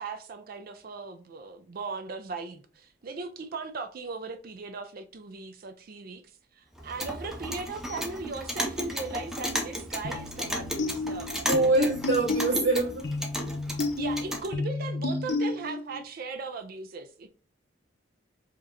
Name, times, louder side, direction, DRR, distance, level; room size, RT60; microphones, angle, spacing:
voice 1, 0.0-11.7 14.0-17.3, right 4 dB, 50° right, 0.4 m, -38 dB
Clock, 6.8-14.5, equal, ahead, 0.6 m, -34 dB
sound 1, 10.0-16.0, left 3 dB, 65° left, 0.7 m, -32 dB
voice 2, 11.4-13.1, right 2 dB, 70° right, 1.9 m, -24 dB
5.0 x 2.8 x 2.5 m
head